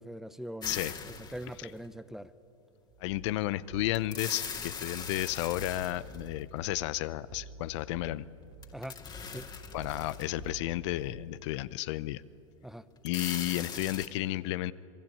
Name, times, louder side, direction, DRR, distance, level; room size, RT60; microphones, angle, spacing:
voice 1, 0.0-2.3 8.7-9.0 9.3-9.5 12.6-12.8, equal, ahead, 14 dB, 0.9 m, -42 dB
sound 1, 0.6-1.9 3.9-6.6 8.6-10.5 11.1-11.2 13.0-14.1, left 6 dB, 25° left, 2.4 m, -41 dB
sound 2, 2.9-11.4, right 3 dB, 40° right, 3.0 m, -50 dB
voice 2, 3.0-8.3 9.7-12.2 13.0-14.7, left 16 dB, 60° left, 17 dB, 0.7 m, -32 dB
27.0 x 21.0 x 8.7 m, 2.7 s
hypercardioid pair, 95°, 17 cm